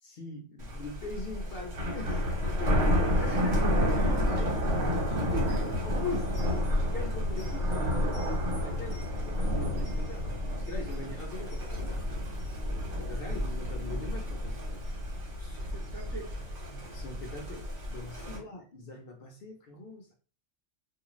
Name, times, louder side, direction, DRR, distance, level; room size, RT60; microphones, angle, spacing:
voice 1, 0.0-2.2 2.6-3.2 3.9-4.6 5.2-6.3 6.8-8.0 8.4-10.3 10.7-12.0 13.0-14.8 16.9-20.1, left 3 dB, 60° left, 0.7 m, -41 dB
Thunder, 0.6-18.4, left 1 dB, 75° right, 1.3 m, -30 dB
voice 2, 2.9-5.2 5.5-5.6 12.9-13.4 15.4-16.8 18.2-18.4, right 3 dB, 30° right, 0.4 m, -45 dB
2.4 x 2.4 x 3.0 m
omnidirectional pair, 1.3 m